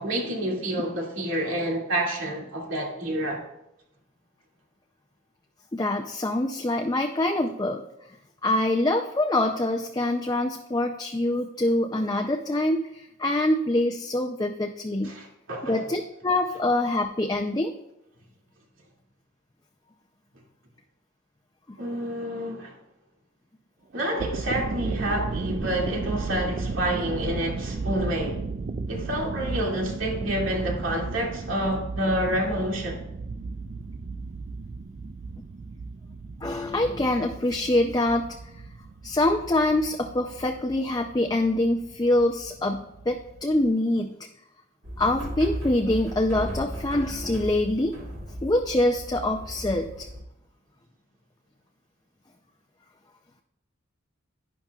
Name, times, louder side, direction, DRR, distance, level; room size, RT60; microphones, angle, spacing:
voice 1, 0.0-3.4 15.0-15.8 21.8-22.7 23.9-28.4 28.9-33.0, right 1 dB, 85° right, 2.4 m, -28 dB
voice 2, 5.7-7.8 8.4-15.2 15.6-17.7 36.4-38.4 39.0-44.2 45.0-48.0 48.4-50.1, left 1 dB, 20° left, 0.5 m, -25 dB
sound 1, 24.0-43.7, right 3 dB, 40° right, 0.3 m, -34 dB
sound 2, 44.8-50.2, equal, 70° right, 2.2 m, -36 dB
11.0 x 10.5 x 2.4 m
head